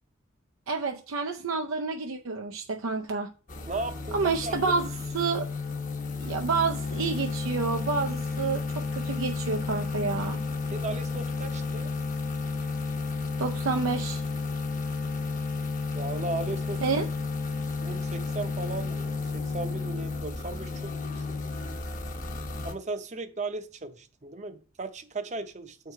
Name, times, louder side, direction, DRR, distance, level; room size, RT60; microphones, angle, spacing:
voice 1, 0.7-3.3 4.1-4.9 5.1-5.5 6.2-10.4 13.4-14.2 16.8-17.1, right 4 dB, 90° right, 0.6 m, -29 dB
sound 1, 3.5-22.7, left 4 dB, 40° left, 0.9 m, -32 dB
voice 2, 3.7-4.8 10.7-11.9 15.9-17.0 17.8-21.4 22.6-25.9, right 3 dB, 35° right, 0.7 m, -36 dB
7.3 x 4.7 x 4.7 m
head